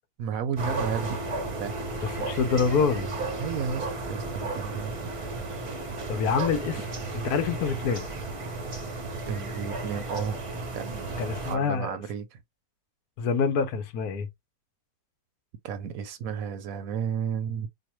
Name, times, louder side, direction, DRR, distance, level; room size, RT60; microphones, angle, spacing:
voice 1, 0.2-1.2 1.6-1.7 3.4-5.1 9.3-10.4 10.7-12.4 15.6-17.7, right 7 dB, 70° right, 0.9 m, -33 dB
sound 1, 0.6-11.5, right 2 dB, 35° right, 0.5 m, -34 dB
voice 2, 2.0-3.1 6.1-6.8 7.1-8.1 11.2-12.0 13.2-14.3, left 5 dB, 75° left, 1.2 m, -26 dB
4.5 x 2.2 x 3.0 m
omnidirectional pair, 1.7 m